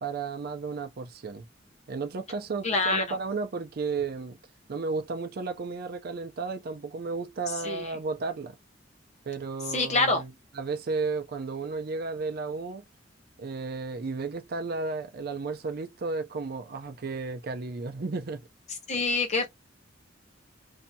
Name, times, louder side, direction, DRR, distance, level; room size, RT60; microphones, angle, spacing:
voice 1, 0.0-1.5 1.9-4.4 4.7-8.6 9.2-12.8 13.4-18.4, right 4 dB, 50° right, 0.5 m, -33 dB
voice 2, 2.6-3.2 7.6-8.0 9.7-10.2 18.9-19.5, left 3 dB, 35° left, 0.8 m, -26 dB
2.7 x 2.7 x 2.2 m
head